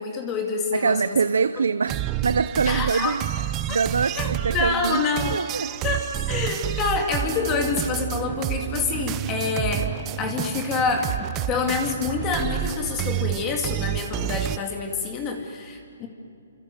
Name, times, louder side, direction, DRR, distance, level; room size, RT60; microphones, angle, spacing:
voice 1, 0.0-1.0 2.7-3.2 3.7-3.8 4.1-5.4 5.8-16.1, left 5 dB, 20° left, 3 dB, 2.5 m, -27 dB
voice 2, 0.7-3.3 3.7-5.7, right 5 dB, 90° right, 13 dB, 0.8 m, -24 dB
sound 1, 1.9-14.6, right 13 dB, 20° right, 0.7 m, -29 dB
sound 2, 5.8-6.1 6.4-6.5 7.2-14.6, right 6 dB, 55° right, 3.7 m, -42 dB
28.5 x 26.5 x 7.8 m, 2.5 s
hypercardioid pair, 165°, 0 cm